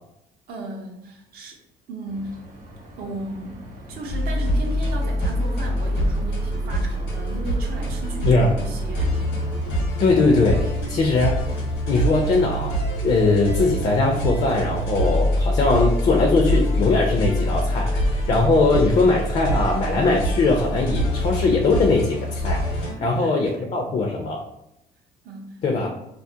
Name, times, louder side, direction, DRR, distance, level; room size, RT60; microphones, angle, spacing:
voice 1, 0.5-1.6 1.9-2.4 3.0-9.2 23.0-23.3 23.6-23.8 25.2-25.9, right 2 dB, 65° right, 1 dB, 0.5 m, -36 dB
sound 1, 2.1-9.8, equal, 50° right, 0.8 m, -41 dB
sound 2, 4.1-22.9, equal, 85° left, 0.9 m, -25 dB
sound 3, 7.8-19.0, equal, 90° right, 0.8 m, -38 dB
voice 2, 8.3-8.6 10.0-11.5 11.9-12.7 13.0-22.6 23.0-24.4 25.6-25.9, left 3 dB, 40° left, 1 dB, 0.4 m, -20 dB
2.3 x 2.0 x 2.7 m, 0.83 s
cardioid pair, 110°, 17 cm